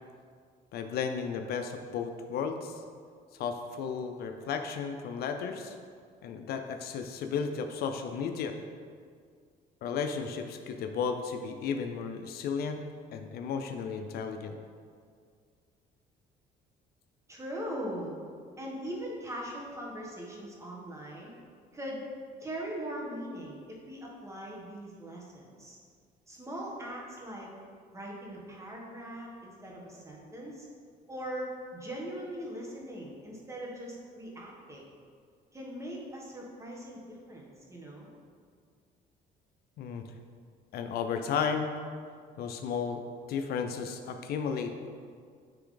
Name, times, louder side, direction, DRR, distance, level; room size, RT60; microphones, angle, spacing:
voice 1, 0.7-2.8 3.3-5.7 6.2-8.6 9.8-12.8 13.1-14.6 39.8-40.0 40.7-41.7 42.4-43.0 43.3-44.7, left 6 dB, 70° left, 6 dB, 0.5 m, -34 dB
voice 2, 17.3-18.1 18.6-21.3 21.7-22.0 22.4-25.8 26.3-27.5 27.9-30.7 31.1-34.8 35.5-38.1, equal, 15° right, -3 dB, 1.5 m, -40 dB
9.8 x 3.4 x 3.8 m, 2.1 s
cardioid pair, 110°, 17 cm